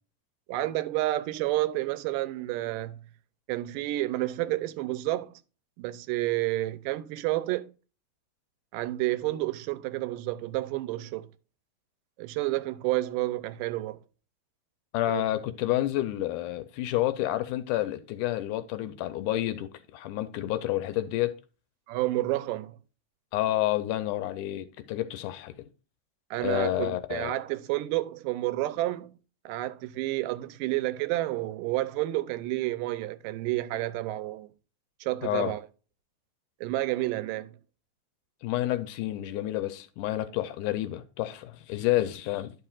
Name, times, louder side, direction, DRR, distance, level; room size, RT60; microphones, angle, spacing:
voice 1, 0.5-3.1 3.5-5.4 5.8-7.7 8.7-11.3 12.2-14.0 15.1-15.2 21.9-22.8 26.3-29.2 29.5-34.5 35.0-35.7 36.6-37.6, right 17 dB, 85° right, 2.2 m, -30 dB
voice 2, 14.9-21.3 23.3-25.5 26.4-27.3 35.2-35.5 38.4-42.5, left 15 dB, 80° left, 2.0 m, -29 dB
11.0 x 5.8 x 2.4 m
omnidirectional pair, 3.8 m